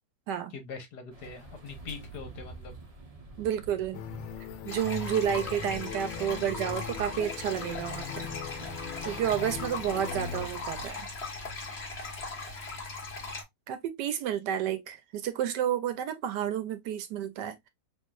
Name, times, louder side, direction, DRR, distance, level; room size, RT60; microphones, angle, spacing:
voice 1, 0.5-2.7, left 4 dB, 65° left, 1.6 m, -42 dB
sound 1, 1.1-10.9, right 2 dB, 35° right, 0.6 m, -47 dB
voice 2, 3.4-4.0 4.6-8.3 9.1-11.1 13.7-17.7, right 10 dB, 75° right, 1.2 m, -31 dB
sound 2, 3.9-10.5, left 10 dB, 85° left, 1.3 m, -40 dB
sound 3, 4.7-13.4, left 3 dB, 40° left, 1.4 m, -39 dB
4.5 x 3.2 x 2.4 m
omnidirectional pair, 2.0 m